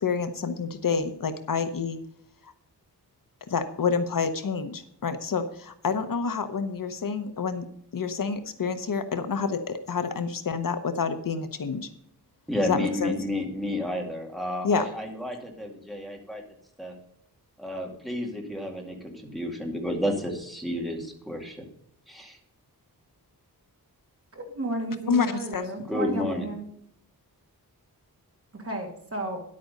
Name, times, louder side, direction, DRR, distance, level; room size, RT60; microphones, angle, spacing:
voice 1, 0.0-2.0 2.4-2.5 3.5-7.7 7.9-11.9 12.6-13.1 14.6-14.9 25.1-25.7, left 5 dB, 60° left, 10 dB, 0.9 m, -28 dB
voice 2, 12.5-16.4 16.8-16.9 17.6-21.7 22.1-22.4 25.9-26.5, left 1 dB, ahead, 1 dB, 2.2 m, -31 dB
voice 3, 24.3-26.7 28.5-29.4, right 2 dB, 35° right, 2 dB, 2.6 m, -33 dB
10.5 x 8.6 x 5.3 m, 0.70 s
wide cardioid pair, 140°, 38 cm